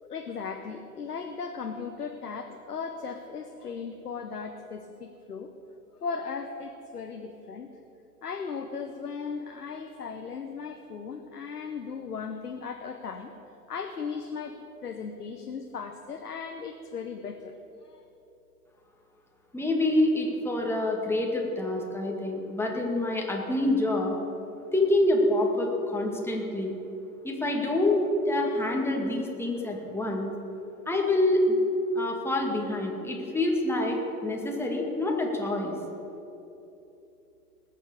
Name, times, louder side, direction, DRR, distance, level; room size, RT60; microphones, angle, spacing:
voice 1, 0.0-5.5 6.0-7.7 8.2-13.3 13.7-14.6 14.8-17.5 17.8-18.0, left 5 dB, 85° left, 5 dB, 0.9 m, -37 dB
voice 2, 19.5-24.2 24.7-26.7 27.2-30.3 30.9-31.6 32.0-35.7, left 1 dB, 5° left, 0 dB, 2.2 m, -26 dB
19.5 x 7.3 x 6.9 m, 2.9 s
figure-of-eight pair, 90°, 45 cm